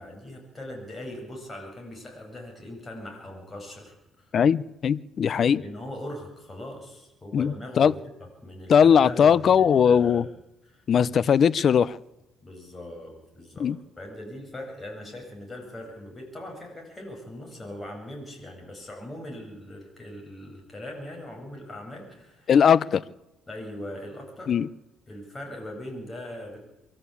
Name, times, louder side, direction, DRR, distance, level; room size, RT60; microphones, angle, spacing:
voice 1, 0.0-4.3 5.4-7.9 8.4-10.3 10.7-11.1 12.4-13.7 14.0-22.5 23.5-24.5 25.1-26.6, left 1 dB, 20° left, 1 dB, 7.9 m, -40 dB
voice 2, 4.3-5.6 7.3-7.9 8.7-10.2 10.9-12.0 13.6-13.8 22.5-23.0 24.5-24.7, left 7 dB, 50° left, 19 dB, 0.7 m, -19 dB
24.0 x 13.5 x 8.5 m, 0.94 s
cardioid pair, 95°, 0 cm